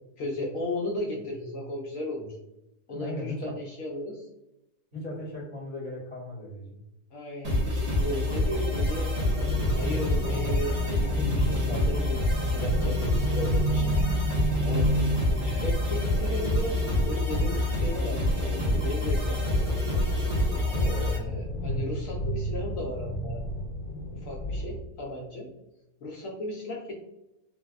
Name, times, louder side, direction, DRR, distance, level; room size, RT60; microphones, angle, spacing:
voice 1, 0.2-2.4 2.9-4.3 7.1-9.1 9.7-13.9 14.6-14.9 15.4-20.1 21.0-23.4 24.1-25.5 26.0-26.9, left 1 dB, 70° left, -1 dB, 0.8 m, -35 dB
voice 2, 2.9-3.5 4.9-6.8 20.7-21.1, left 1 dB, 25° right, -8 dB, 0.7 m, -37 dB
sound 1, 7.4-21.2, left 1 dB, 90° right, 1.7 m, -27 dB
sound 2, 9.3-24.8, equal, 30° left, 1.2 m, -32 dB
3.9 x 2.0 x 2.3 m, 0.91 s
omnidirectional pair, 1.7 m